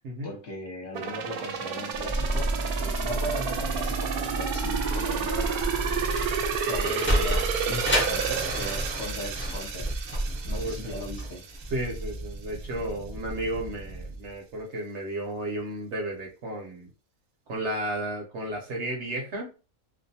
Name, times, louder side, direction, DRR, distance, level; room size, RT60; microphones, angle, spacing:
voice 1, 0.2-5.7 6.5-9.9 10.5-11.4, left 1 dB, 55° left, -1 dB, 1.0 m, -38 dB
sound 1, 0.9-11.7 12.1-12.2, right 6 dB, 85° right, 1.1 m, -31 dB
sound 2, 1.9-14.3 14.6-14.7, right 1 dB, 25° right, 0.6 m, -33 dB
Sliding door, 6.5-11.7, equal, 15° left, 0.4 m, -30 dB
voice 2, 10.4-10.9 11.7-16.9 17.5-19.5, right 1 dB, 60° right, -1 dB, 0.9 m, -33 dB
2.6 x 2.3 x 2.6 m, 0.32 s
omnidirectional pair, 1.5 m